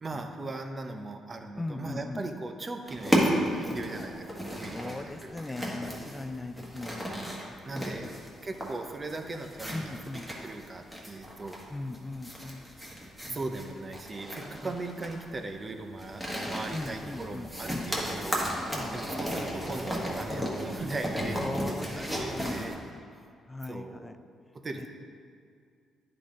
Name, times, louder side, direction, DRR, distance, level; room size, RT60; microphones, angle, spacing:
voice 1, 0.0-5.7 7.1-8.1 8.4-11.6 13.2-18.5 18.9-22.7 23.7-24.1 24.5-24.9, right 2 dB, 30° right, 5 dB, 0.6 m, -39 dB
voice 2, 1.6-2.2 4.7-8.1 9.7-10.3 11.7-12.7 13.2-13.4 14.6-14.8 16.7-17.9 18.7-19.1 20.3-20.5 21.4-23.0 23.5-24.2 24.7-24.9, left 2 dB, 15° left, 10 dB, 0.4 m, -39 dB
sound 1, 2.9-22.7, equal, 5° right, 1.3 m, -34 dB
9.8 x 3.9 x 3.7 m, 2.3 s
cardioid pair, 90°, 0 cm